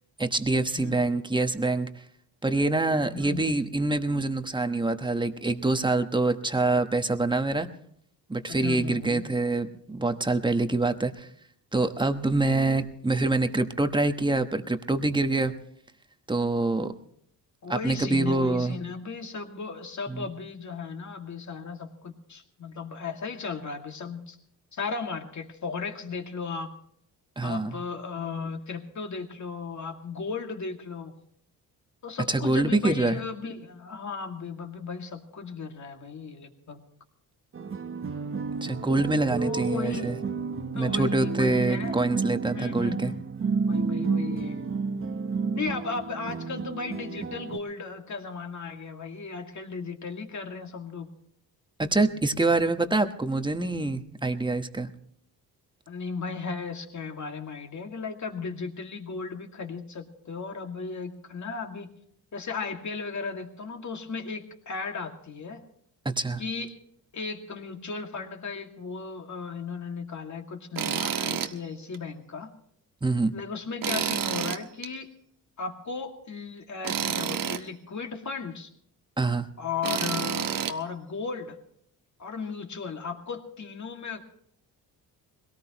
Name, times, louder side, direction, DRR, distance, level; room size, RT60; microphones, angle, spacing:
voice 1, 0.2-1.9 2.4-7.7 8.3-11.3 11.7-15.5 16.3-16.9 17.7-18.8 20.1-20.3 27.4-27.8 32.3-33.2 38.6-40.2 40.7-43.1 51.8-54.9 66.0-66.4 73.0-73.3 79.2-79.5, right 2 dB, 10° right, 8 dB, 1.2 m, -25 dB
voice 2, 0.8-1.1 3.1-3.5 8.5-9.2 17.6-24.4 24.7-26.7 27.4-31.1 32.0-36.8 39.4-40.1 40.7-42.0 42.5-43.2 43.7-44.6 45.5-51.1 55.9-61.9 62.3-65.6 66.4-66.8 67.1-72.5 73.3-75.1 75.6-78.7 79.6-81.6 82.2-84.2, left 5 dB, 45° left, 3 dB, 2.3 m, -36 dB
sound 1, 37.5-47.6, right 4 dB, 30° right, 1.0 m, -31 dB
Tools, 70.8-71.5 71.9-72.0 73.8-74.9 76.8-77.6 79.8-80.7, right 8 dB, 55° right, 1.1 m, -29 dB
21.5 x 18.0 x 3.0 m, 0.67 s
cardioid pair, 75°, 40 cm